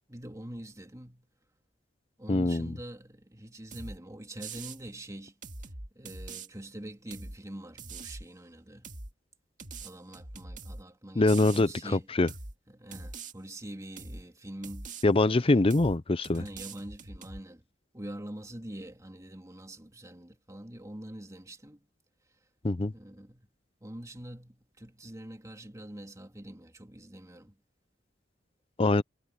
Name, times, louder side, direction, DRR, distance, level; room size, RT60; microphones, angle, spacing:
voice 1, 0.1-1.3 2.2-5.4 5.9-8.9 9.8-12.1 12.7-15.7 16.3-17.6 17.9-21.9 22.8-23.5 23.8-27.6, right 1 dB, 15° right, 2.6 m, -45 dB
voice 2, 2.3-2.7 11.2-11.7 12.2-12.3 15.0-16.4 22.6-22.9 28.8-29.0, left 2 dB, 30° left, 0.6 m, -23 dB
sound 1, 3.7-4.0 4.4-4.8 5.4-6.5 7.1-7.4 7.8-8.3 8.8-9.1 9.6-10.8 11.3-11.6 12.3-12.5 12.9-13.3 14.0-14.2 14.6-15.0 15.7-16.0 16.2-17.4, right 3 dB, 40° right, 2.2 m, -43 dB
head